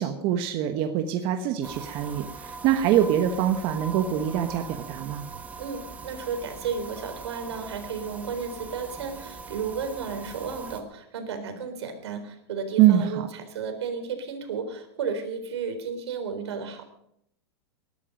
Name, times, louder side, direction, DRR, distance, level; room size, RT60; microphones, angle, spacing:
voice 1, 0.0-5.2 12.8-13.2, right 11 dB, 40° right, 7 dB, 1.2 m, -24 dB
sound 1, 1.6-10.8, right 4 dB, 10° right, 1.3 m, -41 dB
voice 2, 5.3-16.8, right 6 dB, 80° right, 7 dB, 4.0 m, -33 dB
19.5 x 11.5 x 5.2 m, 0.73 s
supercardioid pair, 155°, 14 cm